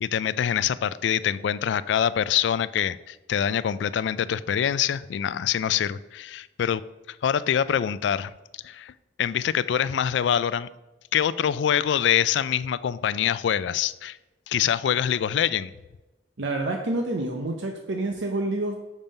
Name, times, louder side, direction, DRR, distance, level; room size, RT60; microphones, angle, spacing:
voice 1, 0.0-6.8 7.1-8.3 8.6-8.9 9.2-10.7 11.1-14.2 14.5-15.7, left 9 dB, 70° left, 16 dB, 0.3 m, -25 dB
voice 2, 16.4-18.8, right 2 dB, 80° right, 3 dB, 0.7 m, -28 dB
7.2 x 5.4 x 5.3 m, 1.1 s
head